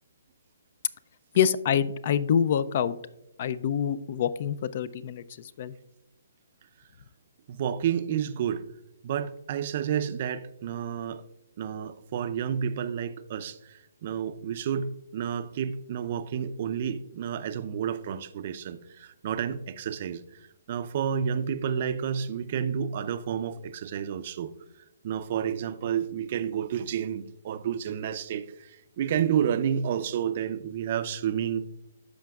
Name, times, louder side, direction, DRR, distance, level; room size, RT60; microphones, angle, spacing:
voice 1, 1.4-3.0 3.4-5.2 5.6-5.7, left 8 dB, 45° left, 0.4 m, -26 dB
voice 2, 7.5-8.6 9.0-11.2 11.6-20.2 20.7-24.5 25.0-31.6, right 8 dB, 45° right, 0.4 m, -30 dB
13.0 x 5.1 x 2.3 m
hypercardioid pair, 150°, 0 cm